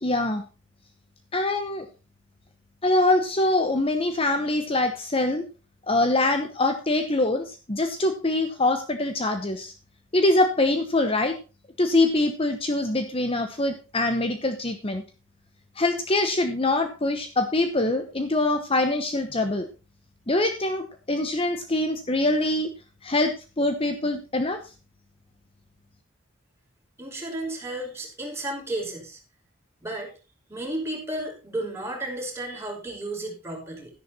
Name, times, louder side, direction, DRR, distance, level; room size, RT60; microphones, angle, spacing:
voice 1, 0.0-0.4 1.3-1.8 2.8-5.5 5.9-9.7 10.1-11.4 11.8-15.0 15.8-19.7 20.3-22.7 23.0-24.6, left 2 dB, 30° left, 7 dB, 1.0 m, -24 dB
voice 2, 27.0-29.2 29.8-30.1 30.5-33.9, right 1 dB, 15° right, -2 dB, 5.6 m, -33 dB
12.5 x 11.0 x 4.2 m, 0.33 s
head